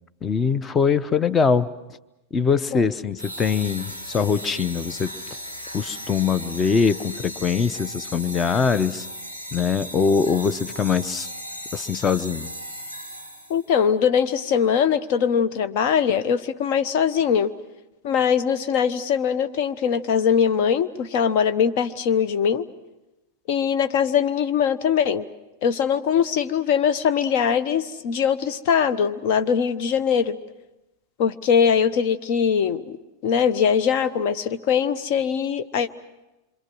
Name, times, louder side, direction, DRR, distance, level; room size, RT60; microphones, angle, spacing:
voice 1, 0.2-1.7 2.3-5.1 5.7-9.1 9.5-11.3 11.7-12.5, left 6 dB, 20° left, 15 dB, 0.9 m, -22 dB
sound 1, 3.2-13.7, equal, 85° left, 3.7 m, -36 dB
voice 2, 13.5-17.5 18.0-22.7 23.5-25.3 25.6-30.4 31.2-33.0 33.2-35.9, left 7 dB, 45° left, 11 dB, 1.1 m, -21 dB
27.0 x 26.0 x 6.3 m, 1.0 s
figure-of-eight pair, 90°, 0 cm